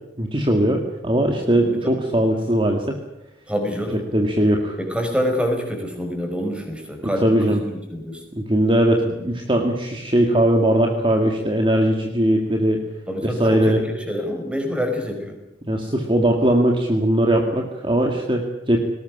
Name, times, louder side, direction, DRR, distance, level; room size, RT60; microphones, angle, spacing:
voice 1, 0.2-3.0 4.1-4.8 7.0-7.6 8.3-12.8 13.2-13.8 15.7-18.8, right 1 dB, 30° right, 2 dB, 2.1 m, -20 dB
voice 2, 1.7-2.0 3.5-4.0 4.8-8.2 13.1-15.3, equal, 5° right, 4 dB, 5.1 m, -26 dB
20.0 x 18.5 x 10.0 m, 0.94 s
head